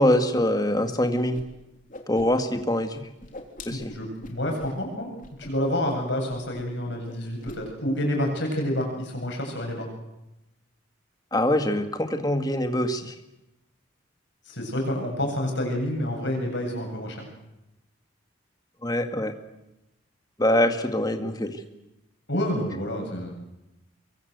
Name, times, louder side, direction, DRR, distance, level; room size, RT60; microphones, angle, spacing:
voice 1, 0.0-1.4 2.1-3.0 3.7-3.9 11.3-13.1 18.8-19.3 20.4-21.6, left 1 dB, 20° left, 6 dB, 1.9 m, -24 dB
Whoosh swoosh swish, 1.3-1.4 1.7-2.6 2.9-4.8 5.2-5.5 5.8-5.9 6.3-6.8 7.0-7.6, left 2 dB, 40° left, 3.4 m, -43 dB
voice 2, 3.7-5.1 5.4-9.9 14.5-17.2 22.3-23.3, left 1 dB, 60° left, 2 dB, 7.9 m, -28 dB
25.0 x 23.0 x 8.2 m, 0.94 s
head